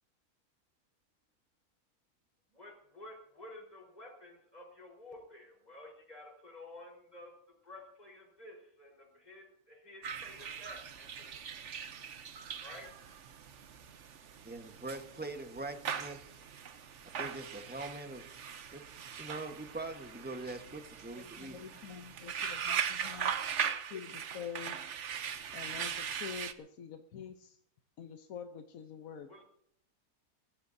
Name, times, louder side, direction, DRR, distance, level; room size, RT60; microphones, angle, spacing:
voice 1, 2.5-7.3 7.6-11.4 12.6-12.9 29.3-29.4, left 1 dB, 25° left, -1 dB, 4.5 m, -52 dB
sound 1, 10.0-26.5, right 8 dB, 55° right, 1.1 m, -40 dB
voice 2, 14.4-16.2 17.2-18.4 18.7-18.8 19.2-21.6, right 2 dB, 5° right, 6 dB, 1.1 m, -43 dB
voice 3, 21.1-23.3 23.9-24.7 25.5-27.6 28.0-29.3, left 7 dB, 70° left, 6 dB, 1.3 m, -46 dB
23.5 x 16.0 x 2.7 m, 0.70 s
omnidirectional pair, 1.6 m